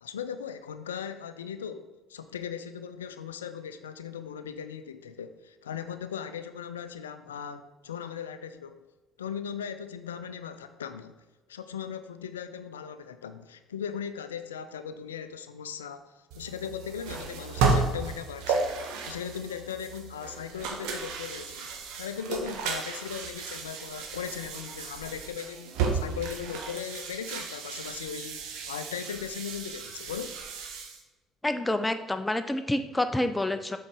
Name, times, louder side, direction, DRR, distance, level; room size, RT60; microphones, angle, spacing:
voice 1, 0.0-8.8 9.2-11.2 11.5-21.7 22.0-30.4, left 8 dB, 75° left, 11 dB, 0.3 m, -38 dB
sound 1, 16.3-31.0, right 4 dB, 60° right, 0.8 m, -33 dB
voice 2, 31.4-33.8, left 1 dB, 10° left, 9 dB, 0.4 m, -28 dB
7.7 x 4.0 x 4.7 m, 1.2 s
figure-of-eight pair, 55°, 0 cm